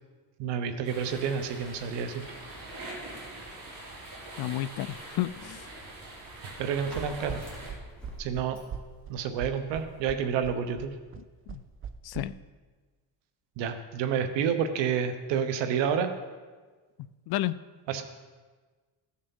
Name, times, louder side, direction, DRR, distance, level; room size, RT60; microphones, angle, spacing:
voice 1, 0.4-2.2 6.6-7.4 8.2-8.6 9.1-10.9 13.6-16.1 17.9-18.0, right 7 dB, 90° right, 9 dB, 1.2 m, -29 dB
sound 1, 0.8-7.7, right 2 dB, 55° right, 3.9 m, -43 dB
voice 2, 4.4-5.6 11.5-11.6 12.0-12.4 17.3-17.6, left 14 dB, 60° left, 16 dB, 0.5 m, -31 dB
sound 2, 5.0-10.1, equal, ahead, 3.3 m, -47 dB
sound 3, 7.0-12.2, right 7 dB, 30° right, 0.5 m, -40 dB
15.0 x 6.5 x 5.5 m, 1.4 s
cardioid pair, 130°, 42 cm